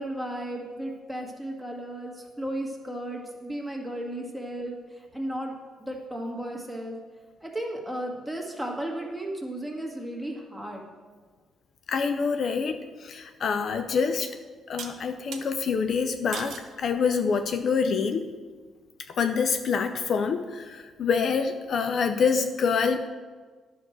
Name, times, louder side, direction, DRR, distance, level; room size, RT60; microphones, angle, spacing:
voice 1, 0.0-7.0 7.4-10.9, right 1 dB, ahead, -1 dB, 1.8 m, -34 dB
voice 2, 11.9-14.3 14.7-18.3 19.1-23.0, left 5 dB, 60° left, 8 dB, 0.5 m, -26 dB
sound 1, 13.4-13.5 14.8-15.5 16.3-16.7 17.4-17.8, right 6 dB, 70° right, 1.0 m, -39 dB
10.0 x 6.3 x 4.5 m, 1.5 s
cardioid pair, 90°, 0 cm